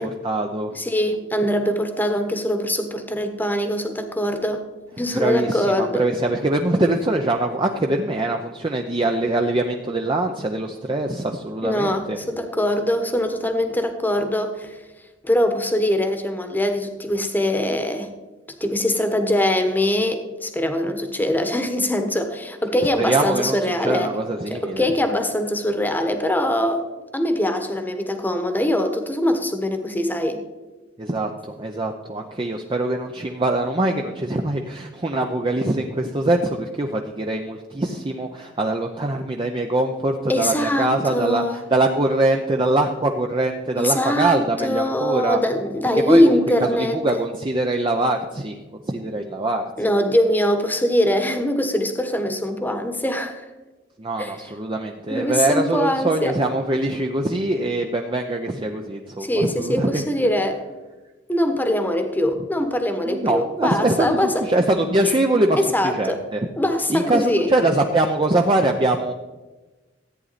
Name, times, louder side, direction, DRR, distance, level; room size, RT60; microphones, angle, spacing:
voice 1, 0.0-0.8 5.1-12.2 23.0-24.9 31.0-41.4 41.7-45.4 46.0-48.6 48.9-49.6 54.0-60.0 63.0-66.5 66.9-69.1, right 2 dB, 25° right, 3 dB, 0.6 m, -23 dB
voice 2, 0.7-4.6 5.0-6.0 11.6-14.8 15.2-18.1 18.6-24.1 24.5-26.8 27.1-30.4 40.3-41.6 43.8-47.2 49.8-53.4 54.2-54.4 55.1-56.3 59.2-60.6 61.3-64.4 65.6-66.2 66.6-67.5, left 1 dB, 10° left, 7 dB, 1.1 m, -22 dB
14.5 x 8.9 x 4.1 m, 1.2 s
head